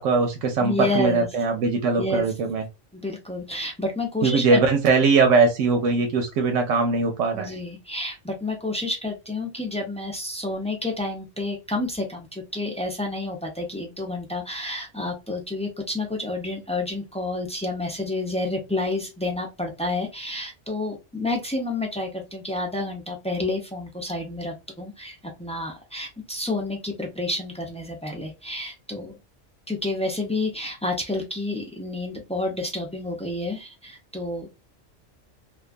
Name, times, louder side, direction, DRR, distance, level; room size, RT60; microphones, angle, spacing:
voice 1, 0.0-2.6 4.2-7.6, right 4 dB, 85° right, 4 dB, 1.0 m, -21 dB
voice 2, 0.6-1.3 2.0-2.3 2.9-4.6 7.3-29.1 29.7-34.5, left 2 dB, 10° left, 1 dB, 0.4 m, -29 dB
2.4 x 2.3 x 2.4 m, 0.24 s
omnidirectional pair, 1.2 m